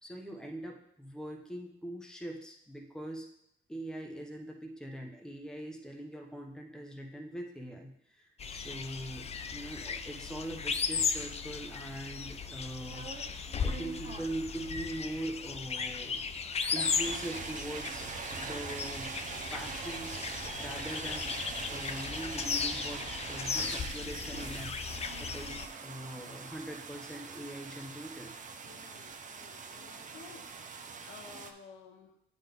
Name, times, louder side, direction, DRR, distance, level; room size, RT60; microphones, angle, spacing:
voice 1, 0.0-3.3 3.7-13.3 13.6-16.2 16.7-19.1 19.5-21.3 21.7-28.3, right 1 dB, 5° left, 1 dB, 1.0 m, -42 dB
sound 1, 8.4-25.7, left 5 dB, 35° left, 0.4 m, -36 dB
sound 2, 12.5-31.5, right 5 dB, 40° right, 0.6 m, -43 dB
voice 2, 28.6-30.4 31.1-32.1, left 5 dB, 80° left, 2 dB, 1.2 m, -53 dB
8.7 x 4.0 x 3.5 m, 0.74 s
cardioid pair, 90°, 20 cm